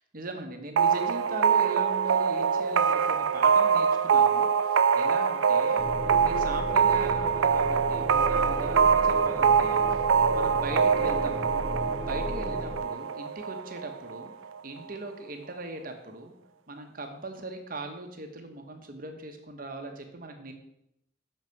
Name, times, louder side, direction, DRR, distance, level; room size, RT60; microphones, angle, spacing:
voice 1, 0.1-11.4 12.0-14.3 14.6-16.3 16.7-20.5, right 2 dB, 45° right, 5 dB, 1.1 m, -39 dB
sound 1, 0.8-14.3, right 6 dB, 90° right, 0.4 m, -24 dB
sound 2, 5.8-12.8, equal, 10° left, 1.0 m, -35 dB
6.6 x 6.2 x 5.8 m, 0.81 s
head